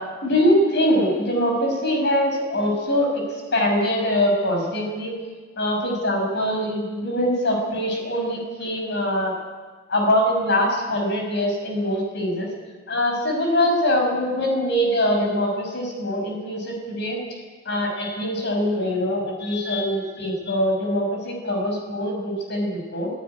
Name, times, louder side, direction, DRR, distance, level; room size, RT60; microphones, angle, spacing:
voice 1, 0.2-3.2 3.5-5.1 5.6-9.3 9.9-12.5 12.9-17.2 17.7-23.1, equal, 55° left, 1 dB, 6.2 m, -23 dB
18.0 x 17.0 x 9.8 m, 1.4 s
head